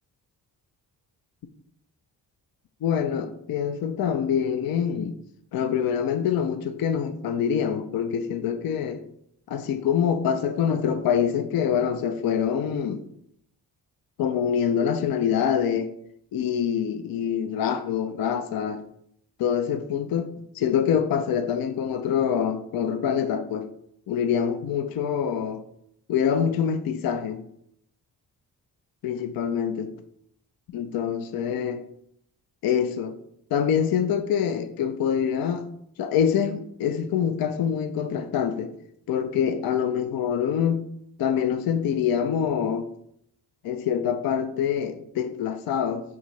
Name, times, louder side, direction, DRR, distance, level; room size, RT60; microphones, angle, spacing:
voice 1, 2.8-5.2 5.5-9.0 9.5-13.0 14.2-15.9 16.3-18.8 19.4-20.3 20.5-23.7 24.1-25.6 26.1-27.4 29.0-29.9 30.7-31.8 32.6-33.1 33.5-35.6 36.0-38.7 39.1-40.8 41.2-42.9 43.6-46.0, left 8 dB, 50° left, 0.5 m, -25 dB
4.6 x 2.6 x 3.2 m
hypercardioid pair, 40°, 47 cm